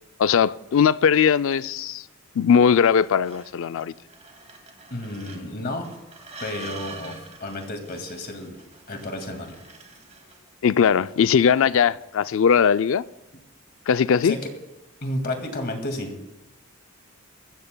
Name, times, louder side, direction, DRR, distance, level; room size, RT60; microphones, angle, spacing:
voice 1, 0.2-2.0 2.4-3.9 10.6-13.0 13.9-14.3, left 7 dB, 60° left, 0.4 m, -19 dB
sound 1, 3.0-10.5, right 3 dB, 30° right, 2.1 m, -45 dB
voice 2, 4.9-5.9 6.4-8.6 8.9-9.6 14.2-14.5 15.0-16.1, left 1 dB, 45° left, 2.1 m, -31 dB
23.5 x 15.5 x 2.2 m
head